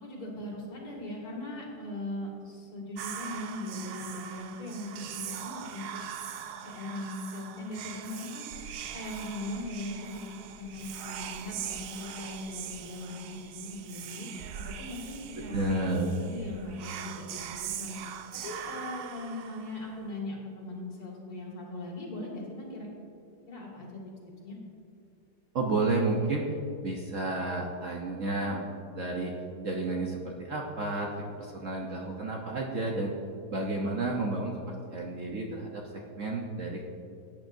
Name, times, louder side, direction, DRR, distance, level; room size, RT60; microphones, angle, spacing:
voice 1, 0.0-6.0 6.6-8.5 8.9-14.3 14.5-15.7 16.2-17.9 18.4-22.9 23.5-24.0 24.4-24.6, left 1 dB, 55° left, -3 dB, 2.6 m, -39 dB
Whispering, 3.0-20.1, right 9 dB, 90° right, 0.7 m, -41 dB
voice 2, 15.4-16.1 25.5-26.5 26.8-28.6 28.9-29.3 29.6-33.1 33.5-36.8, right 2 dB, 50° right, -1 dB, 1.1 m, -31 dB
17.0 x 9.1 x 2.6 m, 2.5 s
omnidirectional pair, 2.0 m